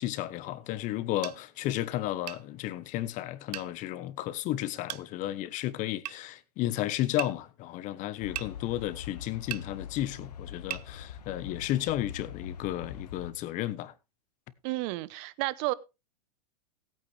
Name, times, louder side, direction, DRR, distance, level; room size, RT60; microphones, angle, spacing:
voice 1, 0.0-13.9, left 14 dB, 40° left, 1.1 m, -33 dB
sound 1, 1.2-1.4 2.3-2.4 3.5-3.7 4.9-5.1 6.0-6.2 7.2-7.3 8.3-8.5 9.5-9.7 10.7-10.9, right 13 dB, 80° right, 0.5 m, -37 dB
sound 2, 8.2-13.3, left 7 dB, 80° left, 1.2 m, -43 dB
voice 2, 14.6-15.7, right 20 dB, 50° right, 0.8 m, -31 dB
16.0 x 8.9 x 3.3 m
hypercardioid pair, 120°, 20 cm